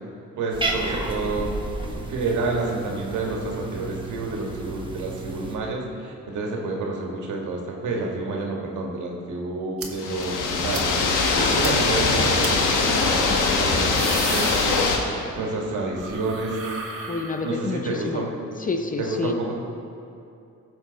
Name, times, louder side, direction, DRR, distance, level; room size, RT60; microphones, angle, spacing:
voice 1, 0.3-11.0 11.5-14.8 15.4-16.6 17.4-18.3 19.0-19.6, right 3 dB, 75° right, 0 dB, 1.7 m, -29 dB
Cat, 0.5-5.6, right 2 dB, 15° right, 1.1 m, -32 dB
sound 1, 9.8-9.9 10.2-10.3 10.7-10.9 11.2-11.3 11.6-11.7 12.4-12.5 13.6-15.3 15.6-17.8, right 4 dB, 50° right, 1.4 m, -35 dB
sound 2, 10.0-15.0, left 3 dB, 90° left, 1.2 m, -22 dB
voice 2, 17.1-18.2 18.6-19.4, left 4 dB, 25° left, 6 dB, 0.7 m, -28 dB
14.5 x 5.9 x 4.0 m, 2.6 s
cardioid pair, 90°, 30 cm